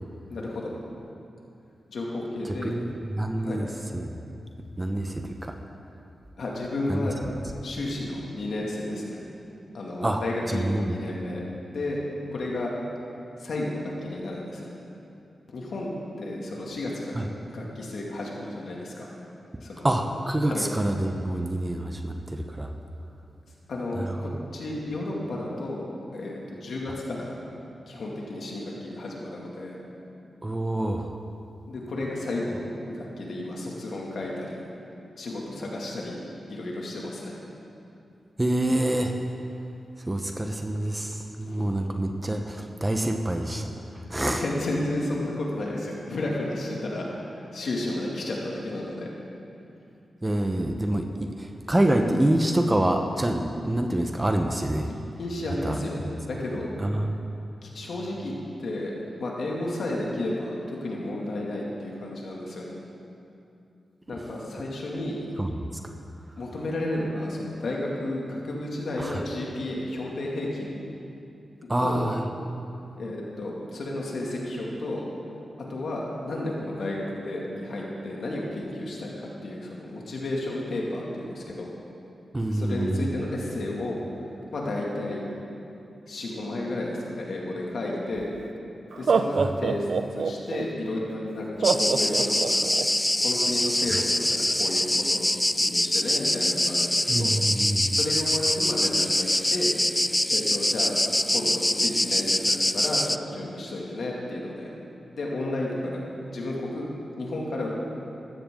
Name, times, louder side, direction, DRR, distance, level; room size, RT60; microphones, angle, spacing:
voice 1, 0.3-0.7 1.9-2.8 3.3-3.6 6.4-7.2 7.6-9.2 9.7-11.4 11.7-12.0 12.3-12.7 13.4-14.7 15.5-15.9 16.2-19.1 19.6-19.9 20.5-20.7 23.7-25.8 26.1-27.3 27.9-29.8 31.7-32.6 32.9-34.6 35.2-36.2 36.5-37.4 41.5-41.6 44.2-49.1 55.2-56.0 56.2-56.7 57.6-58.3 58.6-58.9 59.2-62.8 64.1-65.2 66.4-70.7 71.8-72.0 73.0-75.0 75.7-81.7 82.5-84.0 84.5-85.2 86.1-88.3 89.0-89.9 90.2-92.6 93.2-95.3 95.5-97.3 97.9-100.0 100.3-100.9 101.3-104.7 105.1-106.0 106.3-106.9 107.2-107.7, left 1 dB, 75° left, -3 dB, 2.4 m, -32 dB
voice 2, 2.6-3.7 3.9-4.1 4.8-5.5 6.9-7.1 10.0-10.2 10.5-10.9 19.8-22.7 24.0-24.1 30.4-31.2 38.4-39.1 40.1-43.7 44.1-44.4 50.2-54.9 55.6-55.8 56.8-57.2 65.4-65.6 69.0-69.2 71.7-72.2 82.3-83.2 89.3-89.5 93.9-94.0 97.1-98.0, right 1 dB, 20° right, 4 dB, 1.0 m, -26 dB
Laughter, 88.2-88.3 88.9-90.6 91.6-92.8, right 5 dB, 70° right, 0.5 m, -24 dB
sound 1, 91.6-103.2, left 1 dB, 10° left, 0.4 m, -24 dB
15.0 x 12.5 x 3.9 m, 2.7 s
cardioid pair, 50°, 0 cm